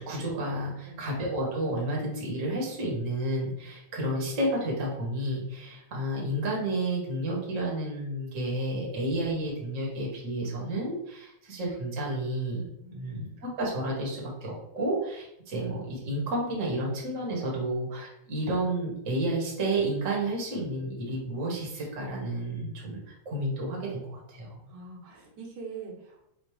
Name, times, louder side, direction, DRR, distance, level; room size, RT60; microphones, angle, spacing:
voice 1, 0.0-23.0 23.2-24.6, right 1 dB, 45° right, -3 dB, 1.0 m, -31 dB
voice 2, 0.8-1.2 12.8-13.5 24.7-26.3, right 4 dB, 75° right, -1 dB, 2.3 m, -44 dB
5.1 x 2.0 x 4.8 m, 0.79 s
omnidirectional pair, 3.4 m